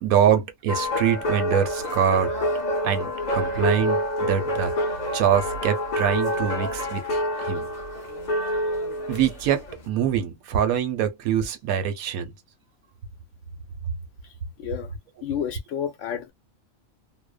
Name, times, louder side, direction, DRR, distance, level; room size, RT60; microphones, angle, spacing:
voice 1, 0.0-2.3 2.8-7.7 9.1-12.3, right 8 dB, 85° right, 1.1 m, -24 dB
sound 1, 0.7-9.8, equal, 40° left, 0.8 m, -27 dB
voice 2, 14.6-14.9 15.2-16.3, left 9 dB, 65° left, 1.0 m, -30 dB
2.8 x 2.1 x 2.3 m
omnidirectional pair, 1.4 m